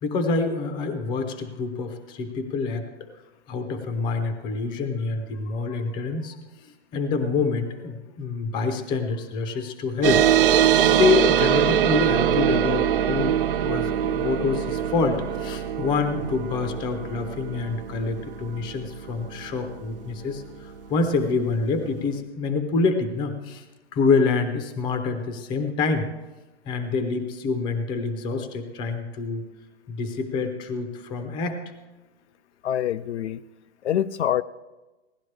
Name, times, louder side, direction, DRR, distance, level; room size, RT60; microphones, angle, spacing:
voice 1, 0.0-2.8 3.5-6.4 6.9-10.2 10.9-13.4 13.6-23.6 23.9-26.1 26.7-29.4 29.9-31.6, left 4 dB, 15° left, 7 dB, 0.7 m, -26 dB
sound 1, 10.0-21.0, right 10 dB, 55° right, 0.6 m, -23 dB
voice 2, 32.6-33.4 33.8-34.4, left 10 dB, 80° left, 13 dB, 0.5 m, -25 dB
17.0 x 11.5 x 3.3 m, 1.1 s
hypercardioid pair, 155°, 34 cm